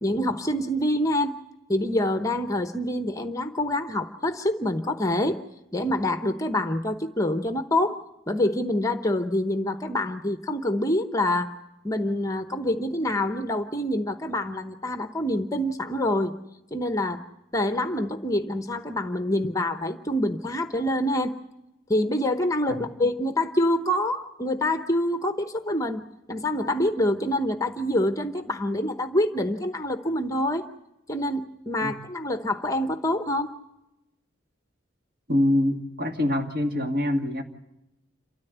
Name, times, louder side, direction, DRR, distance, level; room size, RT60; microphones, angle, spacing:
voice 1, 0.0-1.4 1.7-5.4 5.7-8.0 8.3-11.6 11.8-16.3 16.7-17.2 17.5-21.4 21.9-30.6 31.1-33.5, left 1 dB, 15° left, 8 dB, 0.8 m, -26 dB
voice 2, 35.3-37.4, left 1 dB, 45° right, 4 dB, 2.2 m, -25 dB
28.5 x 13.5 x 8.0 m, 0.93 s
head